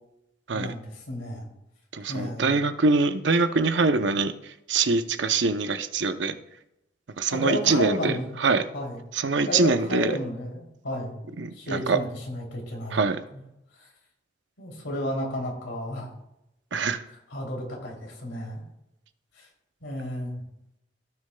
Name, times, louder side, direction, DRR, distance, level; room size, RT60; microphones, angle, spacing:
voice 1, 0.5-1.5 2.1-2.6 7.3-8.4 8.7-9.0 9.5-11.2 11.5-13.0 13.3-13.4 13.8-13.9 14.6-16.1 17.3-18.6 19.4-19.5 19.8-20.4, left 1 dB, 90° left, 0 dB, 2.9 m, -32 dB
voice 2, 1.9-6.3 7.2-8.1 8.4-8.6 9.1-10.1 11.4-12.0 12.9-13.2 16.7-17.0, right 4 dB, 75° right, 9 dB, 0.7 m, -24 dB
16.0 x 6.5 x 2.2 m, 0.85 s
head